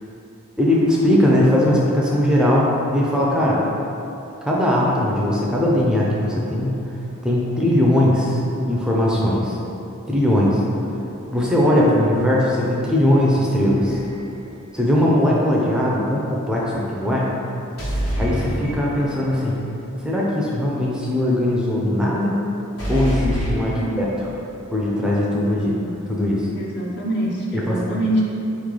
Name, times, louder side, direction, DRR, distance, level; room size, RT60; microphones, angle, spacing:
voice 1, 0.6-3.6 4.4-6.8 7.2-9.6 10.1-10.6 11.3-14.0 14.7-17.3 17.9-19.6 20.0-22.4 22.9-24.1 24.7-25.7 26.1-26.5 27.5-27.8, left 1 dB, 5° right, -5 dB, 0.4 m, -19 dB
sound 1, 13.8-14.5 17.8-19.3 22.8-24.4, equal, 75° left, 1.4 m, -27 dB
voice 2, 26.5-28.2, right 1 dB, 55° left, -3 dB, 0.7 m, -25 dB
4.0 x 3.2 x 3.7 m, 2.8 s
head